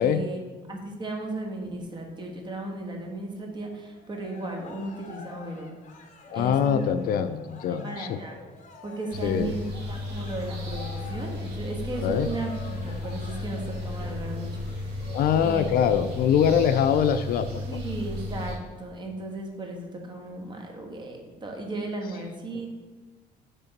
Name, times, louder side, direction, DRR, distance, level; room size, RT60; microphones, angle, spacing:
voice 1, 0.0-5.7 6.3-6.8 7.7-8.4 8.8-15.7 17.7-22.7, right 2 dB, 25° right, 1 dB, 1.3 m, -35 dB
Cheering, 3.9-15.6, left 4 dB, 45° left, 1.0 m, -48 dB
voice 2, 6.3-8.2 9.2-9.5 12.0-12.3 15.1-17.8 22.5-22.6, left 8 dB, 65° left, 11 dB, 0.4 m, -23 dB
sound 1, 9.1-18.5, left 2 dB, 80° right, 1.7 m, -34 dB
6.7 x 3.6 x 5.8 m, 1.3 s
cardioid pair, 110°, 17 cm